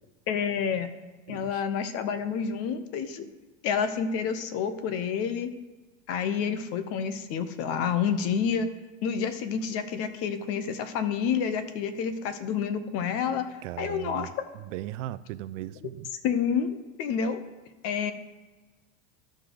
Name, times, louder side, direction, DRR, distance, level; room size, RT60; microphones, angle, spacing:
voice 1, 0.3-0.9 1.3-3.3 3.6-5.5 6.1-8.7 9.0-13.5 13.8-14.3 16.2-17.4 17.8-18.1, left 7 dB, 40° left, 11 dB, 0.8 m, -29 dB
voice 2, 1.3-1.6 13.6-16.1, right 14 dB, 85° right, 16 dB, 0.5 m, -38 dB
13.0 x 5.1 x 3.9 m, 1.3 s
supercardioid pair, 145°, 36 cm